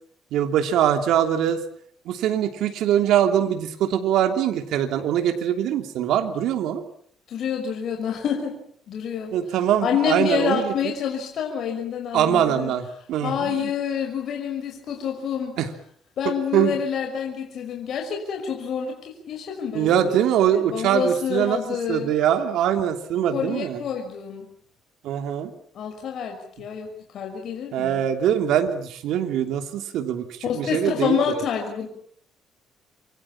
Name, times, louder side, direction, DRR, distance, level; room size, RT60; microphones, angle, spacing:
voice 1, 0.3-1.6 2.1-6.8 9.3-10.7 12.1-13.7 15.6-15.7 16.5-16.8 19.7-21.6 21.9-23.8 25.0-25.5 27.7-31.2, right 10 dB, 80° right, 6 dB, 3.1 m, -22 dB
voice 2, 7.3-8.5 8.9-9.4 9.8-12.7 13.2-15.6 16.2-20.1 20.5-22.1 23.3-24.5 25.7-28.0 30.4-31.9, left 7 dB, 55° left, 3 dB, 5.9 m, -27 dB
28.0 x 24.5 x 7.4 m, 0.62 s
cardioid pair, 135°, 0 cm